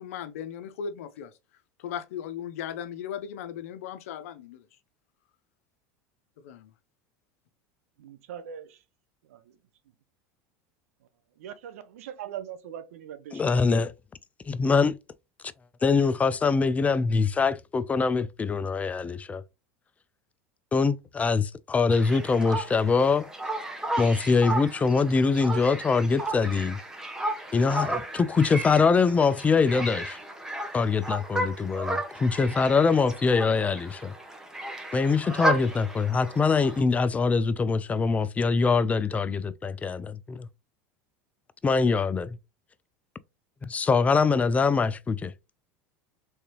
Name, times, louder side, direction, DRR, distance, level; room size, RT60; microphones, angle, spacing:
voice 1, 0.0-1.3 1.8-4.6 6.4-6.6, left 8 dB, 80° left, 0.6 m, -37 dB
voice 2, 8.0-8.8 9.3-9.4 11.4-13.8, right 9 dB, 85° right, 0.7 m, -41 dB
voice 3, 13.3-13.9 14.5-15.0 15.8-19.4 20.7-23.3 24.0-26.8 27.5-30.2 30.7-34.1 34.9-40.5 41.6-42.4 43.6-45.3, left 4 dB, 20° left, 0.3 m, -23 dB
sound 1, 21.9-36.8, right 1 dB, 5° right, 0.9 m, -34 dB
3.5 x 3.2 x 2.9 m
supercardioid pair, 105°, 8 cm